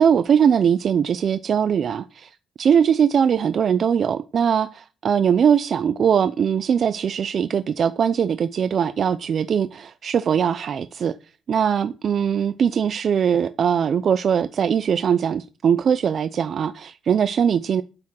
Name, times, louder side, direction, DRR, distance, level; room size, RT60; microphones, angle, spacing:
voice 1, 0.0-2.3 2.6-11.1 11.5-17.8, right 7 dB, 55° right, 0.6 m, -21 dB
9.7 x 7.1 x 6.3 m
cardioid pair, 90°, 0 cm